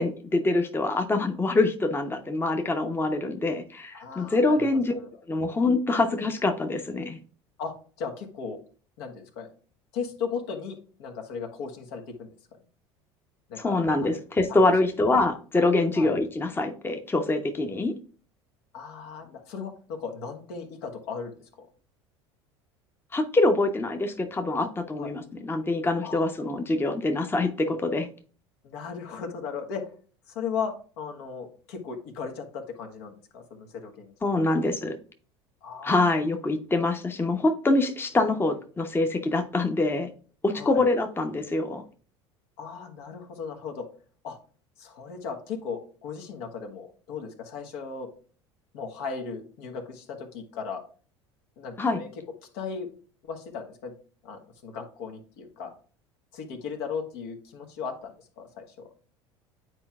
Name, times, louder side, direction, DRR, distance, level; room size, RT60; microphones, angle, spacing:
voice 1, 0.0-4.9 5.3-7.2 13.6-17.9 23.1-28.1 34.2-35.0 35.8-40.1 40.4-41.8 51.8-52.0, left 2 dB, 15° left, 6 dB, 0.8 m, -25 dB
voice 2, 3.9-5.1 7.6-8.6 9.0-9.5 9.9-12.3 13.5-14.1 14.5-14.6 15.9-16.1 18.7-21.7 24.9-25.1 26.0-26.2 28.6-29.9 30.3-34.4 35.6-36.0 40.5-40.9 42.6-43.9 44.2-44.4 44.8-48.1 48.7-50.8 51.6-52.1 52.5-52.9 53.2-53.9 54.2-55.7 56.3-58.9, left 5 dB, 65° left, 3 dB, 1.3 m, -37 dB
9.6 x 4.5 x 2.4 m, 0.41 s
hypercardioid pair, 70°, 15 cm